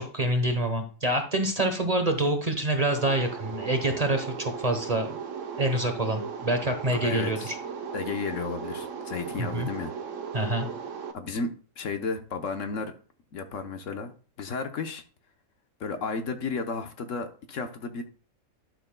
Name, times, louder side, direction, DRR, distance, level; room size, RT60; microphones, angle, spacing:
voice 1, 0.0-5.2 5.6-7.6 9.4-9.7 10.3-10.7, right 1 dB, 30° right, 1.0 m, -26 dB
sound 1, 3.0-11.1, right 6 dB, 65° right, 1.2 m, -37 dB
voice 2, 6.9-7.5 7.9-9.9 11.1-12.9 13.3-14.1 14.4-15.0 15.8-18.0, left 4 dB, 65° left, 1.2 m, -33 dB
12.0 x 6.7 x 2.2 m
omnidirectional pair, 1.4 m